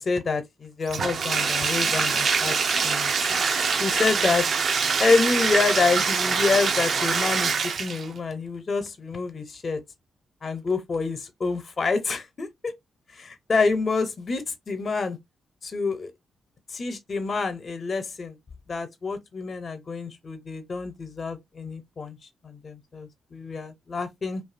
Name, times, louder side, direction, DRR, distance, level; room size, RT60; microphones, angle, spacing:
voice 1, 0.0-2.6 2.8-3.4 3.8-4.5 5.0-9.8 10.4-12.7 13.1-15.2 15.6-16.1 16.7-18.4 18.7-22.2 22.4-24.4, left 4 dB, 50° left, 0.6 m, -27 dB
Bathtub (filling or washing), 0.9-8.1, right 5 dB, 60° right, 0.3 m, -24 dB
2.6 x 2.3 x 2.4 m
supercardioid pair, 60°, 0 cm